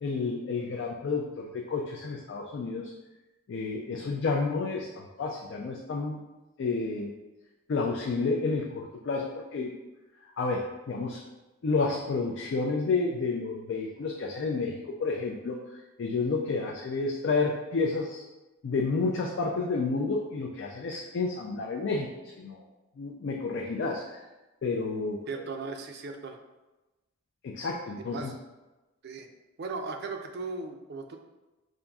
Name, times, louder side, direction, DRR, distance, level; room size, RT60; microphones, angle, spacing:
voice 1, 0.0-2.9 3.5-6.2 6.6-7.1 7.7-9.7 10.2-11.2 11.6-18.2 18.6-22.6 23.0-24.2 24.6-25.3 27.4-28.3, left 4 dB, 55° left, 0 dB, 0.3 m, -30 dB
voice 2, 25.3-26.4 28.1-28.3 29.0-29.3 29.6-31.2, right 3 dB, 50° right, 4 dB, 0.4 m, -37 dB
5.2 x 2.5 x 2.3 m, 1.1 s
head